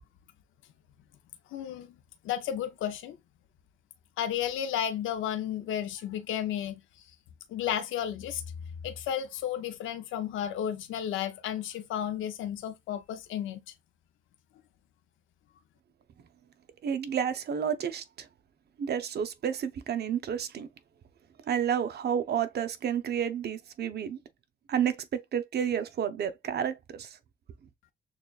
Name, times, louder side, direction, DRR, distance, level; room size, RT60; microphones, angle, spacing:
voice 1, 1.5-1.9 2.2-3.2 4.2-6.8 7.5-8.4 8.8-13.6, left 10 dB, 80° left, 0.6 m, -33 dB
voice 2, 16.8-18.0 18.8-20.7 21.5-24.2 24.7-27.1, right 8 dB, 55° right, 0.8 m, -30 dB
6.4 x 2.4 x 2.4 m
cardioid pair, 90°, 20 cm